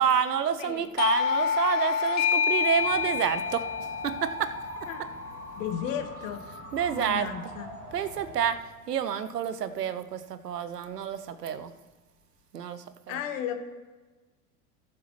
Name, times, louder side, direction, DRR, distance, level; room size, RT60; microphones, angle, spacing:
voice 1, 0.0-3.6 4.0-4.5 6.7-7.3 7.9-8.6 8.9-11.7 12.5-13.2, right 8 dB, 85° right, 13 dB, 0.7 m, -28 dB
Doorbell, 1.0-6.3, left 6 dB, 35° left, 0.9 m, -28 dB
sound 1, 2.7-8.6, right 3 dB, 35° right, 2.2 m, -43 dB
voice 2, 5.5-6.4 6.9-7.7 13.1-13.5, left 9 dB, 55° left, 7 dB, 1.3 m, -34 dB
18.0 x 7.4 x 3.0 m, 1.3 s
figure-of-eight pair, 80°, 47 cm